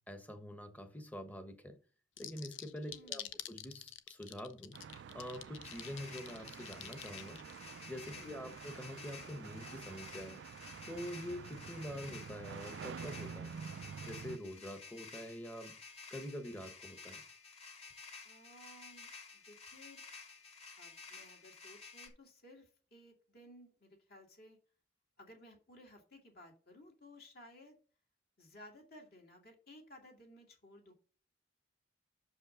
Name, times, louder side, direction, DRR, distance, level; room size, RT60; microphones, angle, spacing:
voice 1, 0.1-1.8 2.2-3.2 3.5-4.8 5.1-7.4 7.9-10.4 10.9-13.6 14.0-15.8 16.1-17.2, equal, 10° left, 8 dB, 1.0 m, -46 dB
sound 1, 2.2-7.7, left 12 dB, 80° left, 0.7 m, -47 dB
voice 2, 2.9-3.4 8.1-8.6 18.2-20.0 20.8-24.6 25.2-27.8 28.4-30.9, left 1 dB, 55° left, 3 dB, 2.7 m, -58 dB
sound 2, 4.7-14.4, right 6 dB, 65° right, 0.3 m, -49 dB
sound 3, 5.6-22.1, left 5 dB, 35° left, 2.0 m, -53 dB
6.5 x 5.4 x 6.8 m, 0.38 s
head